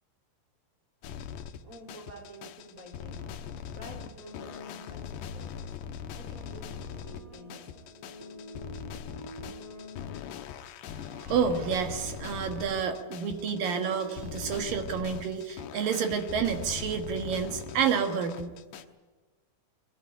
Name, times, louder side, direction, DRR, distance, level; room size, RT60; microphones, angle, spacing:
sound 1, 1.0-18.8, left 8 dB, 75° left, 2.8 m, -41 dB
voice 1, 1.6-8.3, right 1 dB, 20° right, 4 dB, 4.2 m, -50 dB
sound 2, 4.2-5.2 6.0-10.5 11.3-14.7, equal, 10° left, 5.0 m, -48 dB
voice 2, 10.9-18.5, right 6 dB, 60° right, 6 dB, 2.7 m, -29 dB
22.0 x 16.0 x 10.0 m, 1.3 s
omnidirectional pair, 5.3 m